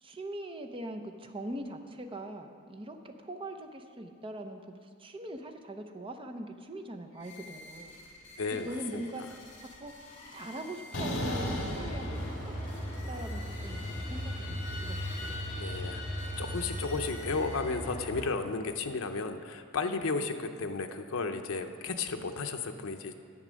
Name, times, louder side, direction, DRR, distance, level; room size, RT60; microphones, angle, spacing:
voice 1, 0.0-7.9 8.6-9.2 9.8-9.9 10.3-12.7 13.1-15.3 21.9-22.1, right 1 dB, 25° right, 6 dB, 0.7 m, -42 dB
sound 1, 7.1-18.2, left 2 dB, 40° left, 2.4 m, -50 dB
voice 2, 8.4-9.0 15.6-23.2, left 4 dB, 80° left, 5 dB, 0.7 m, -34 dB
sound 2, 10.9-12.9 13.2-17.5, left 1 dB, 60° left, 1.7 m, -39 dB
sound 3, 11.8-18.2, equal, 10° left, 3.3 m, -38 dB
11.0 x 8.1 x 6.3 m, 2.3 s
head